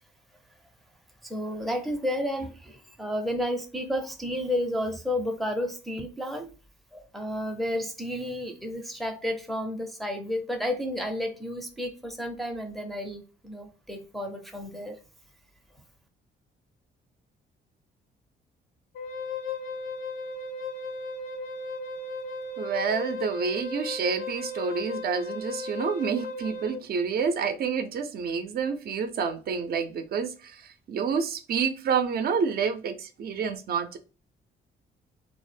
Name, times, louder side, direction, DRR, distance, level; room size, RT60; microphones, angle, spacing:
voice 1, 1.2-6.5 6.9-15.0, left 1 dB, ahead, 0.5 m, -31 dB
Wind instrument woodwind instrument, 18.9-26.8, left 3 dB, 85° left, 0.5 m, -36 dB
voice 2, 22.6-30.6 30.9-34.0, right 6 dB, 50° right, 0.5 m, -28 dB
2.1 x 2.0 x 3.2 m
cardioid pair, 90°, 20 cm